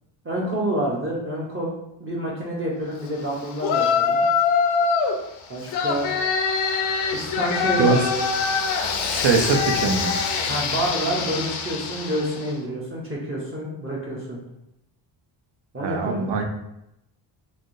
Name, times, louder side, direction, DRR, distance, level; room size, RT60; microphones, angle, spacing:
voice 1, 0.2-1.7 2.0-4.2 5.5-6.1 7.1-8.3 9.2-9.4 10.5-14.4 15.7-16.3, right 1 dB, 25° right, -5 dB, 0.7 m, -28 dB
Yell, 3.6-5.2 5.7-12.4, left 5 dB, 80° left, 0.6 m, -24 dB
voice 2, 7.8-8.1 9.1-10.1 15.8-16.4, right 4 dB, 65° right, 3 dB, 0.7 m, -22 dB
3.4 x 2.7 x 2.6 m, 0.85 s
cardioid pair, 105°, 47 cm